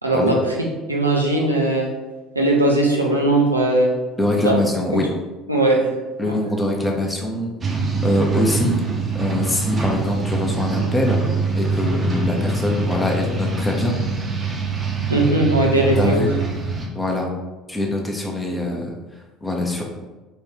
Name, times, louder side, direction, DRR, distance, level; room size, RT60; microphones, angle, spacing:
voice 1, 0.0-0.4 0.9-1.9 2.4-3.9 4.4-4.5 5.5-5.8 6.2-6.3 15.1-16.2, right 2 dB, 90° right, -2 dB, 0.5 m, -18 dB
voice 2, 4.2-5.1 6.2-8.8 9.1-11.2 11.6-14.0 16.0-16.3 16.9-17.3 17.7-18.9 19.4-19.8, left 1 dB, 15° left, 0 dB, 0.8 m, -23 dB
sound 1, 7.6-16.9, right 4 dB, 30° right, 0.8 m, -24 dB
4.0 x 2.5 x 3.5 m, 1.1 s
figure-of-eight pair, 60°, 0 cm